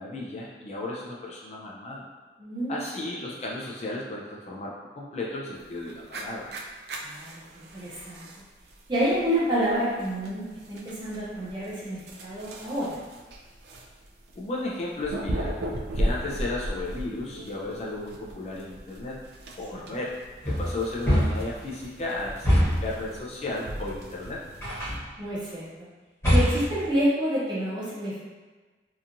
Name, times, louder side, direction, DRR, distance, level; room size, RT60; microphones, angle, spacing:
voice 1, 0.0-2.1 2.7-6.5 14.4-15.6 15.9-19.2 19.6-20.1 20.5-24.4, left 2 dB, 35° left, -4 dB, 0.3 m, -34 dB
voice 2, 2.4-2.8 7.0-8.3 8.9-13.0 19.7-19.9 25.2-25.9 26.3-28.2, equal, 25° right, -8 dB, 0.7 m, -28 dB
sound 1, 5.6-25.0, right 1 dB, 65° right, 0.4 m, -37 dB
sound 2, 20.4-21.6 22.4-23.0 24.6-25.1 26.2-26.9, equal, 15° left, 1.0 m, -23 dB
2.8 x 2.3 x 2.5 m, 1.3 s
head